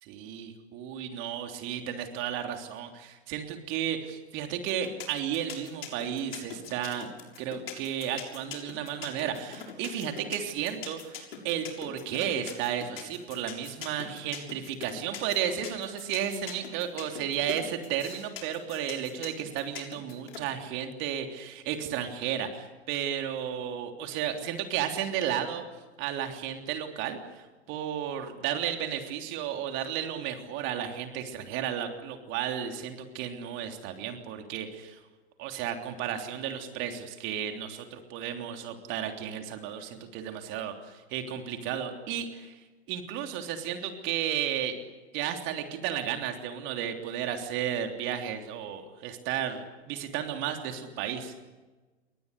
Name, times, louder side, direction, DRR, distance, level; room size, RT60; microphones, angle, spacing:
voice 1, 0.0-7.1 7.4-25.6 26.0-35.0 35.4-42.6 42.9-44.8 45.1-51.3, right 9 dB, 35° right, 5 dB, 3.4 m, -33 dB
sound 1, 4.7-20.4, left 8 dB, 60° left, 6.9 m, -41 dB
29.0 x 25.0 x 6.9 m, 1.2 s
figure-of-eight pair, 95°, 32 cm